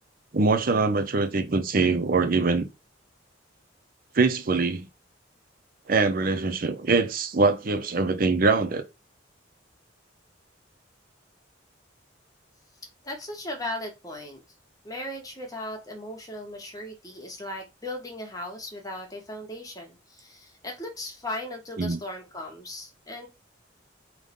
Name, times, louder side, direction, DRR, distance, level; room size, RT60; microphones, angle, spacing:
voice 1, 0.3-2.7 4.1-4.9 5.9-8.8 21.8-22.0, right 3 dB, 50° right, 0.7 m, -23 dB
voice 2, 13.0-14.4 14.8-23.3, left 1 dB, 20° left, 1.7 m, -37 dB
4.9 x 3.7 x 5.4 m
head